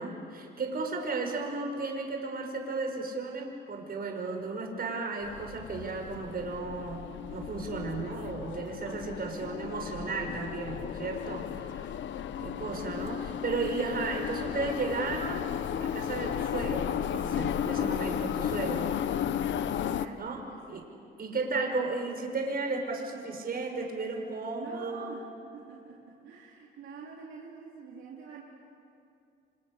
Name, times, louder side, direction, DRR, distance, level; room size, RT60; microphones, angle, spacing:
voice 1, 0.0-7.0 7.3-11.9 12.4-15.5 15.8-19.0 20.1-20.9 21.2-25.3, right 3 dB, 50° right, 2 dB, 5.8 m, -34 dB
sound 1, 5.2-20.1, left 9 dB, 70° left, 1.1 m, -34 dB
voice 2, 12.3-13.0 19.8-20.8 24.5-28.4, right 5 dB, 80° right, -3 dB, 3.9 m, -47 dB
30.0 x 25.5 x 6.8 m, 2.6 s
cardioid pair, 90°, 20 cm